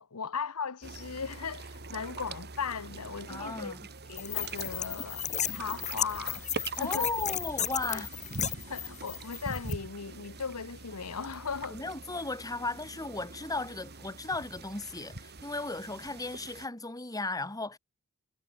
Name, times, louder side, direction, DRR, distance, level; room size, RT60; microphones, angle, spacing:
voice 1, 0.0-3.7 4.1-6.5 6.8-7.1 7.9-8.0 8.7-11.8, left 5 dB, 85° left, 1.1 m, -37 dB
sound 1, 0.8-16.7, right 3 dB, 50° right, 3.5 m, -44 dB
voice 2, 3.3-3.8 6.8-8.1 11.7-17.8, left 2 dB, 15° left, 2.3 m, -36 dB
sound 2, 4.2-9.7, left 9 dB, 35° left, 4.4 m, -34 dB
head